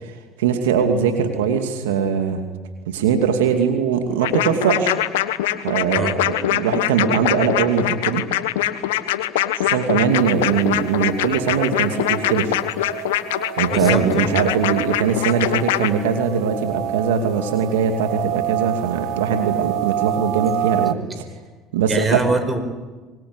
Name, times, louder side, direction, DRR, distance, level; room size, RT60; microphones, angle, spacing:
voice 1, 0.0-2.4 2.9-4.9 5.6-8.2 9.5-12.6 13.6-21.2 21.7-22.2, right 7 dB, 85° right, 6 dB, 2.6 m, -21 dB
sound 1, 4.2-15.9, left 14 dB, 85° left, 1.3 m, -23 dB
sound 2, 10.1-20.9, right 15 dB, 65° right, 1.1 m, -29 dB
voice 2, 13.7-14.4 21.9-22.6, right 2 dB, 20° right, 10 dB, 4.9 m, -23 dB
25.5 x 21.5 x 9.9 m, 1.3 s
hypercardioid pair, 75°, 0 cm